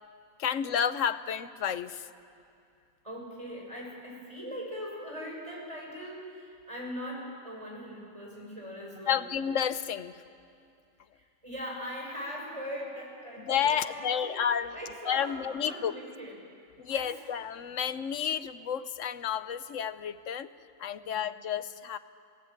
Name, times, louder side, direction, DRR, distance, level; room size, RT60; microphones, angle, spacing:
voice 1, 0.4-2.1 9.1-10.1 13.5-14.8 15.1-15.9 16.8-20.5 20.8-22.0, left 8 dB, 65° left, 13 dB, 1.2 m, -31 dB
voice 2, 3.0-9.3 11.1-14.4 14.7-17.0 21.0-21.3, equal, 20° right, -2 dB, 6.9 m, -41 dB
27.5 x 19.0 x 9.1 m, 2.5 s
omnidirectional pair, 1.4 m